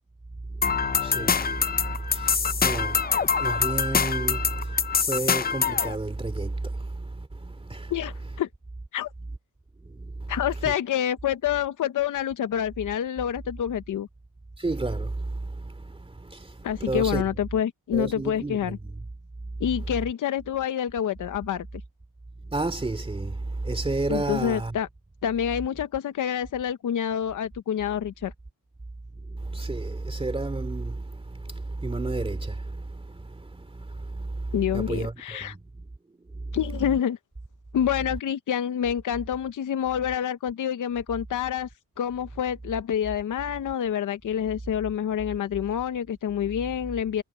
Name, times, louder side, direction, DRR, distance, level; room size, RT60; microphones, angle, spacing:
voice 1, 0.5-7.9 9.8-10.3 14.6-17.3 17.9-19.0 19.8-19.9 22.4-24.7 29.2-35.6 36.2-36.6, right 2 dB, 15° right, 2.6 m, -32 dB
sound 1, 0.6-5.9, left 6 dB, 25° left, 0.5 m, -25 dB
voice 2, 7.9-8.5 8.9-9.1 10.3-14.1 16.6-18.8 19.6-21.7 24.1-24.9 25.2-28.3 34.5-35.5 36.5-37.2 37.7-41.7 42.0-47.2, left 9 dB, 60° left, 0.8 m, -27 dB
wide cardioid pair, 155°, 34 cm